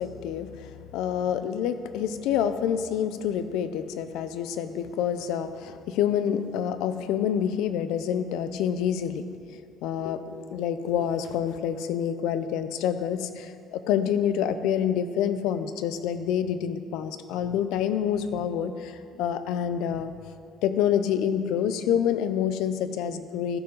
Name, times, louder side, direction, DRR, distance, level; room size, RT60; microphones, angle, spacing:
voice 1, 0.0-20.1 20.6-23.6, left 9 dB, 85° left, 11 dB, 0.5 m, -27 dB
13.5 x 5.6 x 5.4 m, 2.4 s
cardioid pair, 130°, 0 cm